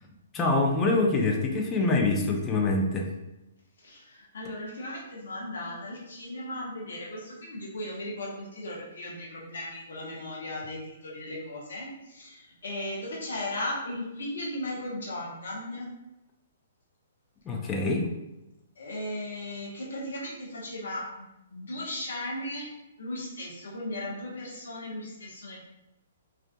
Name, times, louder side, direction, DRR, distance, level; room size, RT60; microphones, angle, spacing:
voice 1, 0.3-3.1 17.5-18.1, left 2 dB, 20° left, 1 dB, 0.5 m, -25 dB
voice 2, 3.8-15.9 18.8-21.2 21.5-25.6, left 1 dB, 70° left, -3 dB, 0.7 m, -37 dB
2.5 x 2.3 x 2.2 m, 0.92 s
hypercardioid pair, 125°, 0 cm